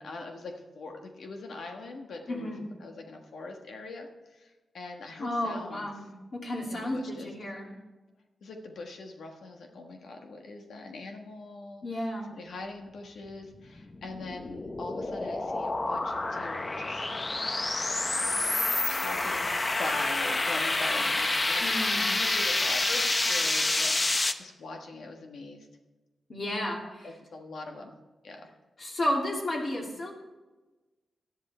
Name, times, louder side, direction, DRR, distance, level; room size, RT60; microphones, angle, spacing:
voice 1, 0.0-2.5 2.8-5.9 6.7-7.3 8.4-11.8 12.3-17.1 18.8-25.7 27.0-27.9 28.2-28.5, left 3 dB, 80° left, 2 dB, 1.4 m, -42 dB
voice 2, 2.3-2.6 5.2-7.7 11.8-12.3 21.6-22.1 26.3-27.1 28.8-30.1, left 1 dB, 50° left, -2 dB, 3.0 m, -32 dB
sound 1, 13.8-24.3, left 2 dB, 30° left, 0.8 m, -28 dB
11.5 x 11.0 x 4.4 m, 1.2 s
cardioid pair, 85°, 0 cm